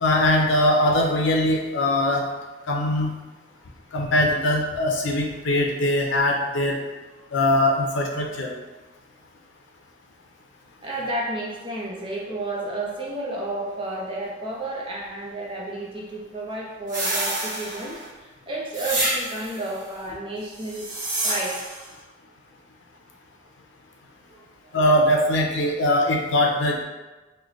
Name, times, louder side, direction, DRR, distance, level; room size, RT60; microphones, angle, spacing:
voice 1, 0.0-2.2 2.7-3.1 3.9-6.7 7.3-8.5 24.7-26.8, left 1 dB, 85° left, 1 dB, 0.5 m, -21 dB
voice 2, 10.8-20.9 21.2-21.6 24.3-24.5, right 2 dB, 25° right, -4 dB, 0.6 m, -31 dB
sound 1, 16.9-18.1 18.7-19.6 20.6-21.8, right 1 dB, 75° right, 1.3 m, -28 dB
3.2 x 2.2 x 3.8 m, 1.2 s
head